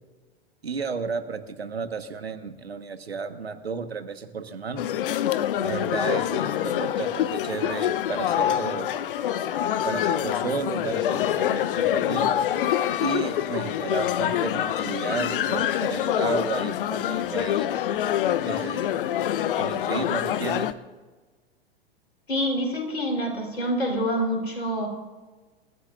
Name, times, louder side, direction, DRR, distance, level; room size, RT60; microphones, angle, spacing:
voice 1, 0.6-4.8 5.6-8.9 9.8-12.3 13.0-17.7 18.4-19.1 19.5-20.7, right 5 dB, 80° right, 8 dB, 1.5 m, -33 dB
sound 1, 4.8-20.7, left 11 dB, 60° left, 0.9 m, -26 dB
voice 2, 22.3-24.9, equal, 85° left, 2 dB, 4.1 m, -26 dB
28.0 x 14.5 x 2.6 m, 1.3 s
figure-of-eight pair, 95°, 31 cm